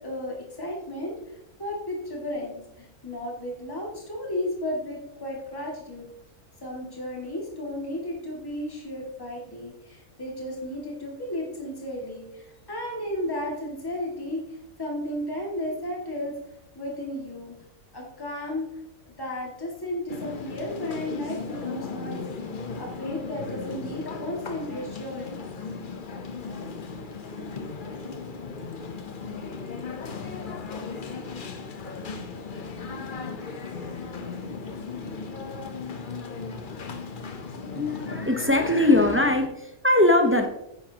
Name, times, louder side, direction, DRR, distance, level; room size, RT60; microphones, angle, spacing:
voice 1, 0.0-6.1 6.6-16.3 16.7-17.6 17.9-25.4, left 1 dB, 15° left, -2 dB, 2.2 m, -34 dB
sound 1, 20.1-39.5, left 4 dB, 45° left, 0.8 m, -36 dB
voice 2, 37.8-40.5, left 1 dB, 15° right, 4 dB, 0.6 m, -21 dB
10.0 x 9.4 x 2.9 m, 0.85 s
omnidirectional pair, 1.6 m